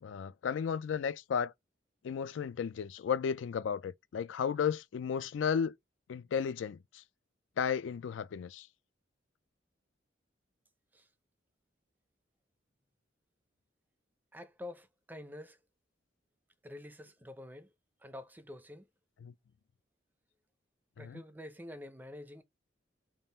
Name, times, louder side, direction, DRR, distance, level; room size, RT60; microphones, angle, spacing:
voice 1, 0.0-1.5 2.0-5.8 6.1-7.0 7.6-8.7 19.2-19.3 21.0-21.2, left 7 dB, 85° left, 0.3 m, -34 dB
voice 2, 14.3-15.6 16.6-17.7 18.0-18.9 21.0-22.4, left 1 dB, 10° right, 0.5 m, -47 dB
3.6 x 2.4 x 3.9 m
head